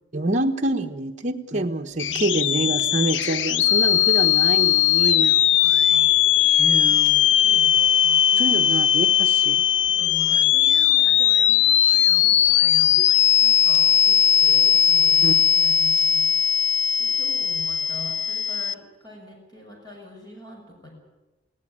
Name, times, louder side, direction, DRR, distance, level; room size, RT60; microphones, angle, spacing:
voice 1, 0.1-5.3 6.6-7.2 8.4-9.6 15.2-15.3, right 1 dB, 40° right, 2 dB, 1.1 m, -26 dB
sound 1, 1.9-15.5, equal, 50° left, 6.0 m, -51 dB
sound 2, 2.0-18.7, left 10 dB, 85° left, 0.7 m, -19 dB
voice 2, 5.2-6.1 6.7-8.8 9.9-13.0 13.4-16.2 17.0-20.9, left 1 dB, 25° left, 0 dB, 6.3 m, -43 dB
20.0 x 17.0 x 9.9 m, 1.0 s
head